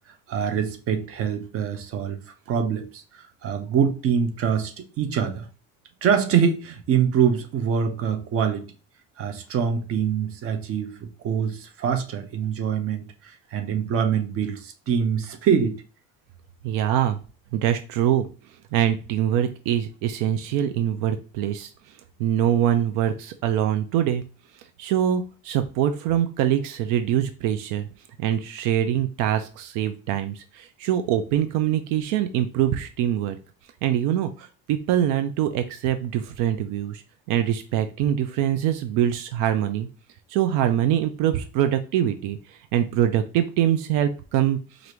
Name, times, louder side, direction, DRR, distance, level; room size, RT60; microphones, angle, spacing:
voice 1, 0.3-2.2 2.5-4.7 5.0-5.5 6.0-8.6 9.2-15.8, right 7 dB, 45° right, 0.7 m, -24 dB
voice 2, 16.6-17.2 17.5-18.3 18.7-21.7 22.2-24.2 24.6-27.9 28.2-33.4 33.8-37.0 37.3-39.9 40.3-44.9, right 10 dB, 80° right, 0.5 m, -24 dB
4.8 x 2.6 x 2.9 m
cardioid pair, 145°, 32 cm